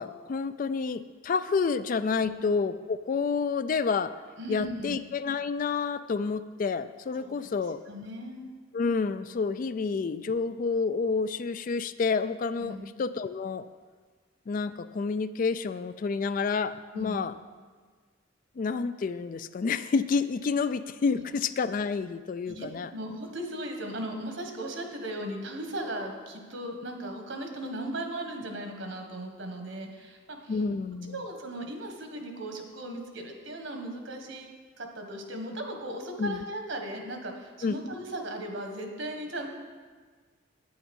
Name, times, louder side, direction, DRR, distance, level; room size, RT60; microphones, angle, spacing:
voice 1, 0.0-4.1 4.5-7.8 8.7-13.7 14.5-17.3 18.6-22.9 30.5-31.2 36.2-36.4 37.6-37.7, left 5 dB, 40° left, 13 dB, 0.3 m, -29 dB
voice 2, 4.4-5.0 7.2-7.4 7.9-8.5 12.6-12.8 16.9-17.2 21.1-21.2 22.5-30.6 31.1-34.5 34.8-39.5, right 1 dB, 70° right, 3 dB, 1.4 m, -37 dB
9.1 x 8.7 x 5.3 m, 1.5 s
head